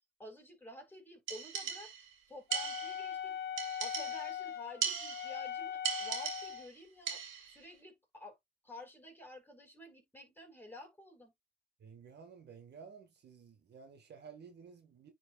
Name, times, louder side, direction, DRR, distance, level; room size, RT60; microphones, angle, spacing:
voice 1, 0.2-1.9 2.3-3.3 3.8-7.2 7.5-8.4 8.6-11.3, left 1 dB, 10° left, 4.8 m, -51 dB
sound 1, 1.3-2.1 2.5-3.1 3.6-4.4 4.8-5.5 5.8-6.7 7.1-7.6, right 7 dB, 80° right, 2.3 m, -39 dB
Wind instrument woodwind instrument, 2.5-6.7, left 9 dB, 55° left, 1.0 m, -40 dB
voice 2, 11.8-15.1, right 6 dB, 60° right, 1.7 m, -53 dB
10.0 x 4.7 x 2.4 m
cardioid pair, 90°, 20 cm